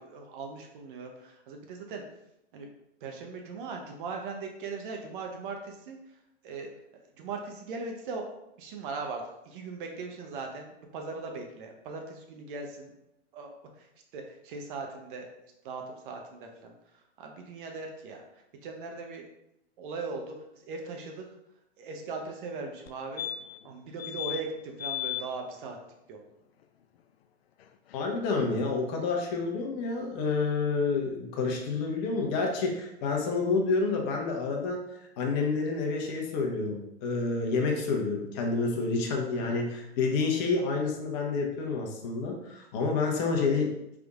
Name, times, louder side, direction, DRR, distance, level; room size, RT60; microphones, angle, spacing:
voice 1, 0.0-2.0 2.5-2.7 3.0-6.0 6.4-6.7 7.2-12.9 13.3-15.3 15.6-16.7 17.2-18.3 18.6-19.3 19.8-21.3 21.8-23.3 23.6-25.8 26.1-26.2 39.3-39.6, right 4 dB, 50° right, 3 dB, 0.8 m, -39 dB
sound 1, 22.9-23.0 23.2-23.7 24.0-24.4 24.8-25.2 27.6-27.7 27.9-28.0, left 13 dB, 60° left, 0.5 m, -34 dB
voice 2, 27.9-34.8 35.2-43.7, left 4 dB, 35° left, 1 dB, 0.9 m, -29 dB
5.0 x 3.6 x 2.4 m, 0.85 s
hypercardioid pair, 115°, 34 cm